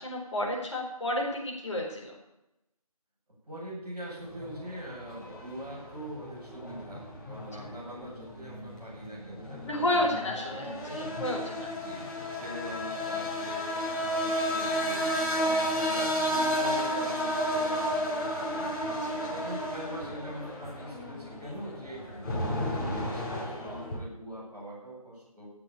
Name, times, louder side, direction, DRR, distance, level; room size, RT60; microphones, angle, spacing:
voice 1, 0.0-2.1 9.6-11.7 15.5-15.6 19.0-19.2 22.1-22.2, left 1 dB, 50° left, -2 dB, 4.5 m, -31 dB
voice 2, 3.5-11.1 11.7-13.6 14.0-15.0 15.4-18.7 19.1-22.0 22.4-25.5, equal, 5° right, -14 dB, 7.2 m, -43 dB
sound 1, 4.2-24.0, equal, 30° left, 4.6 m, -32 dB
17.5 x 7.6 x 8.6 m, 0.89 s
figure-of-eight pair, 165°, 20 cm